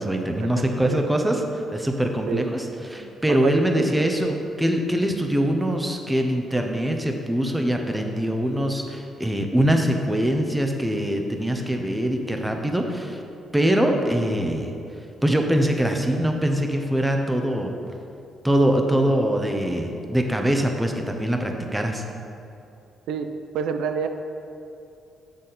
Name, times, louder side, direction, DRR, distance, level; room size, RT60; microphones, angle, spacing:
voice 1, 0.0-13.2 13.5-14.7 15.2-17.7 18.4-22.0, right 1 dB, 10° right, 3 dB, 0.8 m, -23 dB
voice 2, 3.0-3.9 23.1-23.3 23.5-24.1, right 6 dB, 85° right, 7 dB, 0.4 m, -28 dB
7.3 x 6.5 x 4.2 m, 2.6 s
cardioid pair, 90°, 0 cm